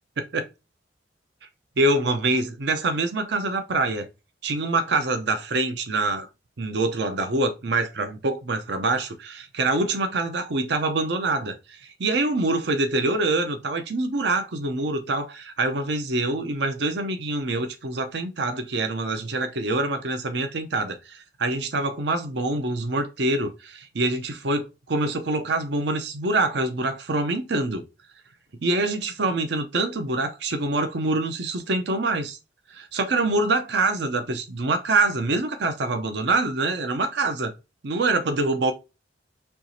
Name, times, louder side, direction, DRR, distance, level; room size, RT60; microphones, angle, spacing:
voice 1, 1.8-4.1 4.4-6.3 6.6-27.8 28.6-32.4 32.7-37.5 37.8-38.7, right 2 dB, 65° right, 0.7 m, -25 dB
4.5 x 2.9 x 2.7 m
head